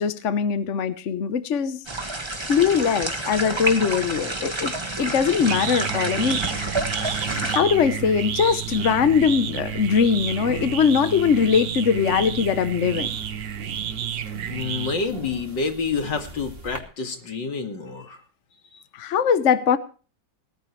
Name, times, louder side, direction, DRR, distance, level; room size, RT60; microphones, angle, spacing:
voice 1, 0.0-1.8 2.5-6.7 7.0-7.1 7.4-13.1 18.9-19.8, left 7 dB, 50° left, 12 dB, 1.2 m, -21 dB
sound 1, 1.9-7.6, right 2 dB, 15° right, 1.8 m, -29 dB
sound 2, 5.0-15.3, right 9 dB, 60° right, 1.4 m, -31 dB
sound 3, 7.1-16.8, right 2 dB, 30° right, 3.0 m, -41 dB
voice 2, 14.5-18.2, left 4 dB, 80° left, 6 dB, 2.8 m, -28 dB
18.5 x 14.5 x 3.2 m, 0.37 s
omnidirectional pair, 1.9 m